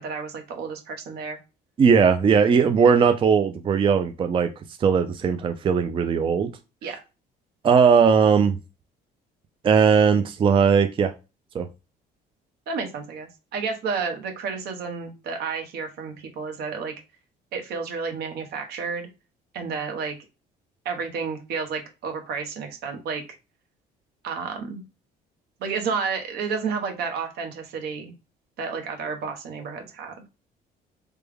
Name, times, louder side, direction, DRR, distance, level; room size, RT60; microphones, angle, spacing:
voice 1, 0.0-1.4 6.8-7.0 12.7-16.9 17.5-19.1 19.5-20.1 20.8-23.2 24.2-24.8 25.6-28.1 28.6-30.1, right 5 dB, 75° right, 4 dB, 1.0 m, -31 dB
voice 2, 1.8-4.5 4.8-6.5 7.6-8.6 9.6-11.1 11.5-11.7, right 6 dB, 30° right, 7 dB, 0.4 m, -18 dB
3.3 x 2.2 x 3.4 m, 0.28 s
cardioid pair, 110°, 17 cm